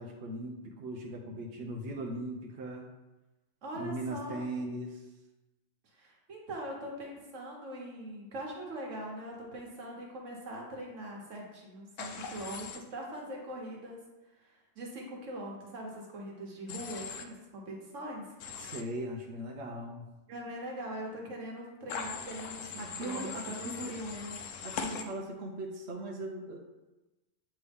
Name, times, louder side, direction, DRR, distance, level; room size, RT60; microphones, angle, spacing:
voice 1, 0.0-2.9 3.7-5.1 18.6-20.1 22.8-23.9 24.6-26.6, right 1 dB, 60° right, -1 dB, 0.9 m, -39 dB
voice 2, 3.6-4.4 5.9-14.0 14.3-18.3 20.3-24.4, right 1 dB, 75° right, -1 dB, 1.5 m, -42 dB
Human voice / Train, 12.0-12.8 16.7-17.2 18.4-18.8 21.9-25.0, left 6 dB, 80° left, 1.0 m, -40 dB
8.3 x 3.4 x 3.5 m, 1.1 s
omnidirectional pair, 1.3 m